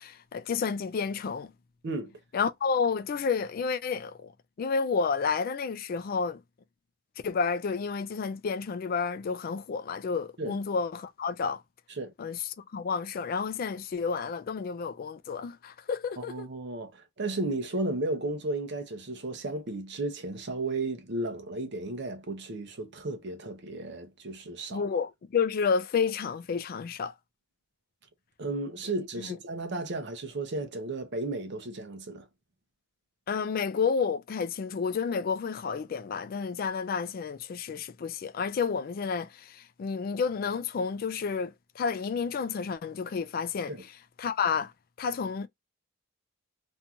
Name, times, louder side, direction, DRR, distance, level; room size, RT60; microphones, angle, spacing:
voice 1, 0.0-1.5 2.3-4.3 4.6-6.4 7.2-11.6 12.2-16.5 24.7-27.1 29.2-29.4 33.3-43.7 44.2-44.7 45.0-45.5, left 5 dB, 45° left, 0.3 m, -30 dB
voice 2, 16.2-24.9 28.4-32.3 43.7-43.9, right 2 dB, 55° right, 0.7 m, -34 dB
2.6 x 2.3 x 2.7 m
head